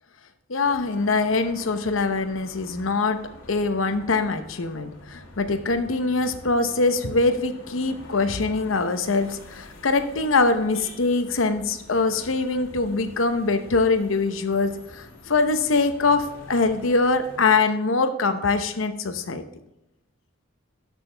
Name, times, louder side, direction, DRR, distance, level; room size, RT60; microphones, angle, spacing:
voice 1, 0.5-3.2 3.5-19.4, left 3 dB, 75° left, 9 dB, 0.9 m, -23 dB
sound 1, 0.6-17.6, left 2 dB, 90° left, 1.9 m, -46 dB
12.0 x 6.3 x 3.4 m, 0.92 s
head